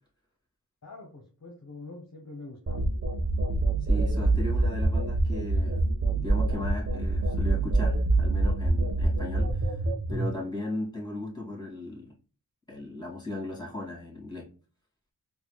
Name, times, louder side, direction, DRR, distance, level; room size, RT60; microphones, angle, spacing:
voice 1, 0.8-2.9, left 2 dB, 40° left, 1 dB, 0.7 m, -45 dB
sound 1, 2.7-10.3, right 2 dB, 35° right, 0.6 m, -25 dB
voice 2, 3.8-5.8 6.1-9.8 10.1-12.1 12.7-14.5, left 2 dB, 10° left, -3 dB, 1.8 m, -37 dB
3.9 x 2.2 x 2.9 m, 0.37 s
wide cardioid pair, 40°, 41 cm